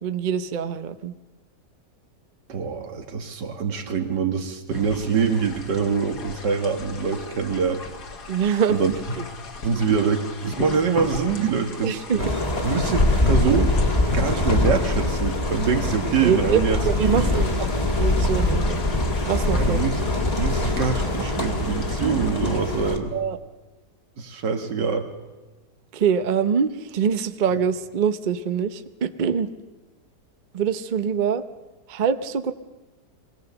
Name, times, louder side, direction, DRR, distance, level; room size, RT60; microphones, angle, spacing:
voice 1, 0.0-1.1 8.3-8.8 11.8-12.2 16.2-16.6 16.9-17.7 17.9-18.8 19.3-19.8 23.1-23.4 25.9-29.5 30.5-31.4 31.9-32.5, right 7 dB, 45° right, 10 dB, 0.6 m, -24 dB
voice 2, 2.5-7.8 8.7-8.9 9.6-12.3 12.6-13.7 14.1-17.4 19.6-20.0 20.4-23.1 24.2-25.1, right 6 dB, 85° right, 5 dB, 2.1 m, -24 dB
sound 1, 4.7-22.6, left 3 dB, 70° left, 2.2 m, -37 dB
sound 2, 12.2-23.0, left 2 dB, 25° left, 1.7 m, -23 dB
22.5 x 17.0 x 6.9 m, 1.2 s
omnidirectional pair, 1.8 m